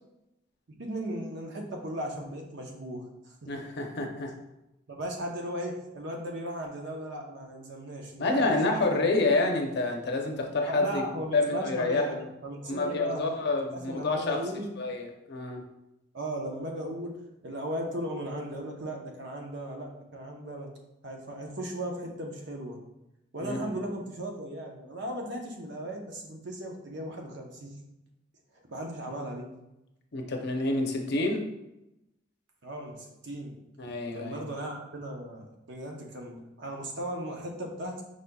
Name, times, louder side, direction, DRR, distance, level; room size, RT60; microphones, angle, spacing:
voice 1, 0.8-3.5 4.9-9.0 10.7-13.2 13.6-14.7 16.1-17.1 17.4-20.7 21.0-22.8 23.3-27.7 28.7-29.5 32.6-33.5 34.1-38.0, right 1 dB, 65° right, 1 dB, 0.8 m, -37 dB
voice 2, 3.5-4.3 8.2-11.0 11.3-12.1 12.7-14.4 14.8-15.6 23.4-23.9 30.1-31.5 33.8-34.4, left 2 dB, 60° left, 3 dB, 0.7 m, -28 dB
5.0 x 4.1 x 2.3 m, 0.89 s
head